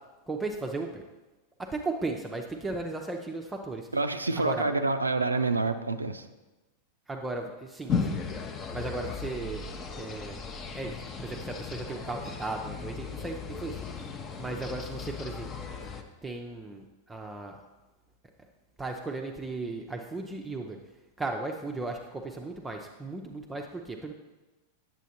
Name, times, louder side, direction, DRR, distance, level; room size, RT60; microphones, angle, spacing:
voice 1, 0.3-1.0 1.6-3.9 4.4-4.7 7.1-8.2 8.7-9.6 10.0-10.4 10.7-10.9 11.2-13.9 14.4-15.5 16.2-16.8 17.1-17.6 18.8-20.8 21.2-24.1, right 3 dB, 10° right, 2 dB, 0.6 m, -36 dB
voice 2, 3.9-6.2, right 3 dB, 80° right, 8 dB, 0.4 m, -27 dB
sound 1, 7.9-16.0, left 5 dB, 25° left, 0.7 m, -36 dB
9.1 x 7.5 x 2.8 m, 1.1 s
figure-of-eight pair, 90°, 0 cm